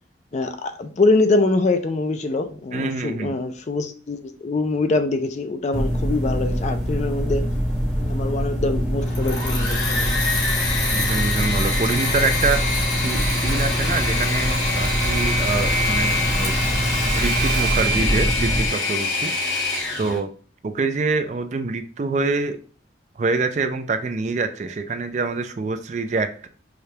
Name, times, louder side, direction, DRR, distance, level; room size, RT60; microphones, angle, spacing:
voice 1, 0.3-7.5 8.0-10.0, left 3 dB, 40° left, 0.4 m, -24 dB
voice 2, 2.7-3.4 10.9-16.6 17.1-19.3 20.0-20.3 20.6-22.6 23.2-26.5, right 4 dB, 40° right, 0.3 m, -26 dB
sound 1, 5.7-18.7, equal, 5° right, 1.0 m, -24 dB
Engine / Mechanisms, 9.0-20.2, left 2 dB, 75° left, 1.2 m, -24 dB
4.9 x 2.2 x 2.7 m
head